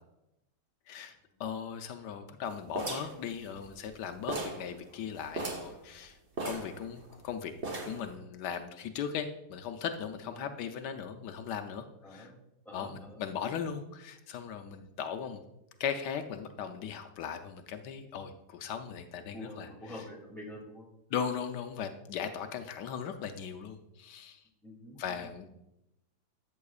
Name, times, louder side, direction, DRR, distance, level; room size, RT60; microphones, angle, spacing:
voice 1, 1.4-6.2 6.4-7.5 7.8-12.3 12.7-15.4 15.8-20.0 21.1-24.4 25.0-25.5, left 7 dB, 85° left, 7 dB, 1.2 m, -38 dB
sound 1, 2.8-4.0 4.3-4.7 5.0-5.1 5.3-5.7 6.4-7.2 7.6-8.1, right 2 dB, 45° right, 1.6 m, -37 dB
voice 2, 12.0-12.4 12.6-13.2 19.3-20.9 24.6-25.3, left 1 dB, ahead, -3 dB, 2.4 m, -47 dB
13.0 x 7.7 x 2.4 m, 0.88 s
omnidirectional pair, 1.8 m